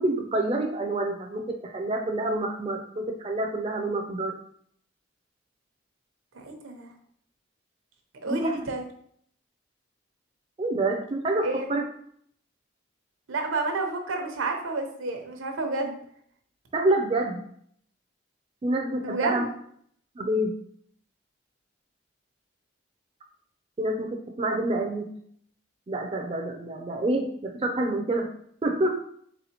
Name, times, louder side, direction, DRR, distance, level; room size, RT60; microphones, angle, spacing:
voice 1, 0.0-4.4 8.3-8.6 10.6-11.8 16.7-17.4 18.6-19.5 20.2-20.5 23.8-25.1 25.9-28.3 28.6-29.0, right 2 dB, 30° right, 2 dB, 0.4 m, -27 dB
voice 2, 6.3-6.9 8.2-8.8 11.4-11.7 13.3-15.9 19.0-19.5, right 3 dB, 90° right, 3 dB, 0.8 m, -30 dB
4.0 x 3.6 x 2.8 m, 0.65 s
head